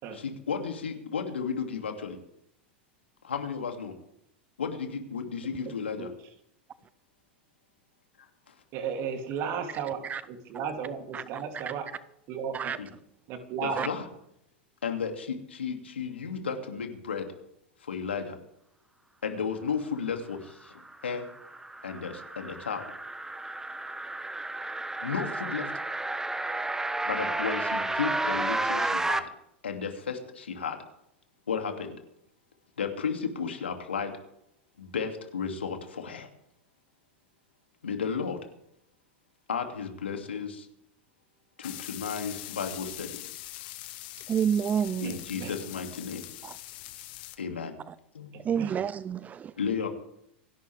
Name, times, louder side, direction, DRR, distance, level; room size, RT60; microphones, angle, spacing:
voice 1, 0.1-2.2 3.2-3.9 4.6-6.1 8.5-8.6 12.8-12.9 13.6-14.1 14.8-17.3 17.8-18.4 19.2-20.7 21.0-21.3 21.8-22.9 25.0-25.7 27.0-29.2 29.6-30.8 31.5-32.0 32.8-34.1 34.8-36.3 37.8-38.4 39.5-40.7 41.6-43.2 45.0-46.2 47.4-47.7 48.1-48.3 49.6-49.9, left 6 dB, 85° left, 4 dB, 2.7 m, -33 dB
voice 2, 8.7-10.0 10.3-11.9 12.3-12.7 13.3-13.9 45.0-45.5 48.6-48.7, right 6 dB, 45° right, 4 dB, 3.1 m, -34 dB
voice 3, 11.1-11.7 12.5-12.8 13.8-13.9 44.3-45.1 46.4-46.5 47.9-48.0 48.5-49.5, right 8 dB, 25° right, 18 dB, 0.5 m, -29 dB
sound 1, 20.8-29.2, right 2 dB, 10° right, 1.2 m, -32 dB
sound 2, 41.6-47.4, left 16 dB, 60° left, 1.6 m, -42 dB
27.5 x 11.5 x 3.6 m, 0.79 s
hypercardioid pair, 95°, 6 cm